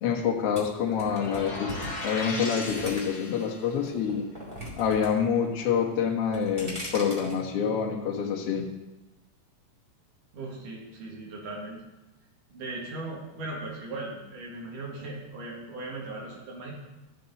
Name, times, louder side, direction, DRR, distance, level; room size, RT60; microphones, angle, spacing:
voice 1, 0.0-1.7 2.0-4.3 4.8-8.6, left 7 dB, 55° left, 0 dB, 2.0 m, -27 dB
sound 1, 0.5-3.4 3.8-5.1 5.4-5.8 6.2-7.3, equal, 20° right, 1.9 m, -39 dB
sound 2, 0.9-3.7, left 2 dB, 40° left, 1.7 m, -37 dB
voice 2, 10.3-11.8 12.5-16.7, right 2 dB, 85° right, -2 dB, 3.6 m, -38 dB
13.0 x 6.8 x 4.1 m, 1.0 s
omnidirectional pair, 3.6 m